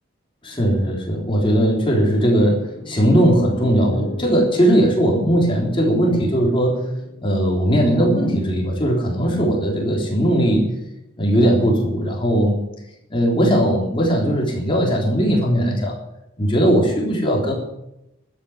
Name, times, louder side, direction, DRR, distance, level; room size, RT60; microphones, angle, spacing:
voice 1, 0.4-6.9 7.2-10.7 11.2-12.6 13.1-15.9 16.4-17.5, equal, 25° left, -1 dB, 3.5 m, -18 dB
Piano, 2.5-10.6, left 3 dB, 55° left, 3.0 m, -39 dB
12.5 x 8.9 x 9.8 m, 0.88 s
head